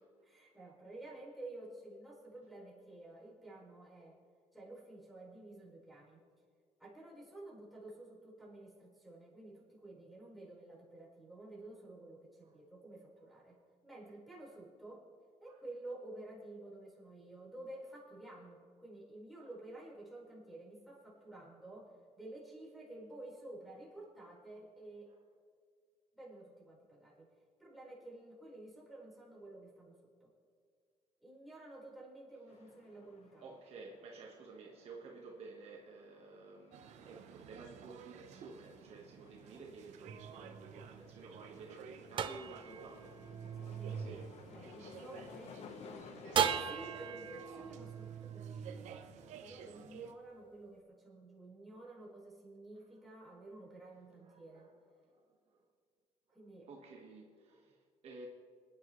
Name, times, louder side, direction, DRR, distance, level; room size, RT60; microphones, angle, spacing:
voice 1, 0.2-4.2 4.5-6.2 6.8-13.6 13.8-15.1 15.4-25.1 26.1-27.3 27.6-30.3 31.2-33.5 43.5-45.8 46.6-54.7 56.3-56.7, right 2 dB, ahead, -7 dB, 4.4 m, -52 dB
sound 1, 32.5-46.8, left 5 dB, 65° left, 1.1 m, -57 dB
voice 2, 33.4-43.2 43.9-44.3 53.2-53.3 54.2-54.7 55.1-55.6 56.7-58.3, right 3 dB, 60° right, 0 dB, 1.4 m, -53 dB
sound 2, 36.7-50.1, right 7 dB, 80° right, 0.9 m, -54 dB
sound 3, 40.1-45.4 46.3-49.7, right 8 dB, 45° right, 0.6 m, -40 dB
26.5 x 9.8 x 3.2 m, 2.1 s
cardioid pair, 135°, 12 cm